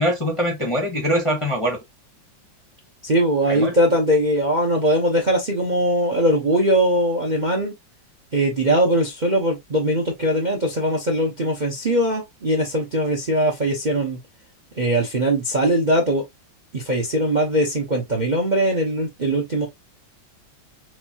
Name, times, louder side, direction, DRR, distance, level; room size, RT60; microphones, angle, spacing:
voice 1, 0.0-1.8 3.5-3.7, equal, 20° left, 0.9 m, -22 dB
voice 2, 3.0-7.7 8.3-14.2 14.8-16.2 16.7-19.7, right 1 dB, 35° right, 0.8 m, -21 dB
6.3 x 2.6 x 2.9 m
omnidirectional pair, 2.1 m